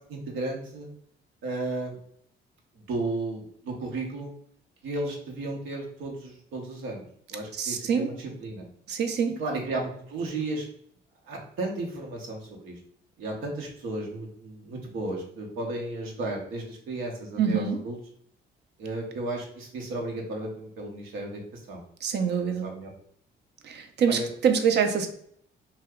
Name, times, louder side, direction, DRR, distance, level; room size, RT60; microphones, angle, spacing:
voice 1, 0.1-0.9 1.4-2.0 2.9-4.3 4.8-7.0 7.3-8.6 9.4-10.7 11.3-12.8 13.2-18.0 18.8-21.8 22.1-22.9 24.1-24.3, right 2 dB, 90° right, 0 dB, 0.8 m, -34 dB
voice 2, 7.5-8.1 8.9-9.4 17.4-17.8 22.0-22.7 23.6-25.1, right 7 dB, 60° right, 6 dB, 0.5 m, -25 dB
2.8 x 2.2 x 3.4 m, 0.64 s
cardioid pair, 90°, 20 cm